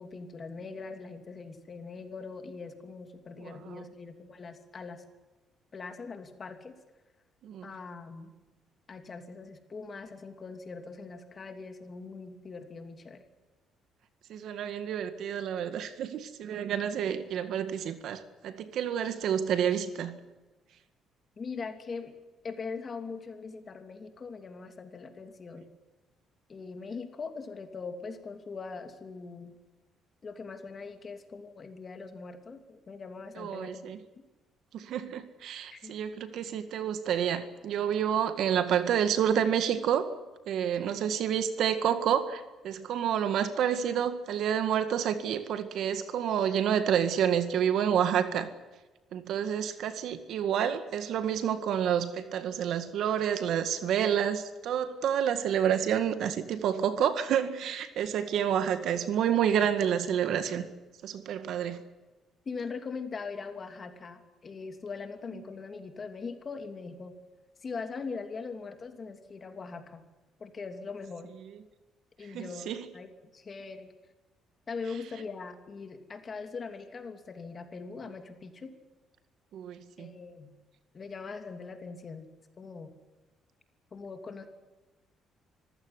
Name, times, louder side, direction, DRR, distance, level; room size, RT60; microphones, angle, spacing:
voice 1, 0.0-5.0 5.7-6.7 7.6-8.3 8.9-13.2 21.4-22.1 22.4-25.7 26.5-29.6 30.2-33.9 35.7-35.9 62.4-67.1 67.6-70.0 70.4-71.3 72.2-72.7 72.9-73.9 74.7-78.7 80.0-80.5 80.9-82.3 82.6-82.9 83.9-84.5, left 4 dB, 35° left, 7 dB, 2.9 m, -41 dB
voice 2, 3.4-3.9 7.4-7.7 14.3-20.2 33.4-34.0 34.7-40.1 40.5-48.5 49.1-60.7 61.0-61.8 72.3-72.9 79.5-80.2, right 9 dB, 70° right, 10 dB, 1.9 m, -29 dB
25.5 x 15.5 x 9.8 m, 1.2 s
cardioid pair, 130°, 0 cm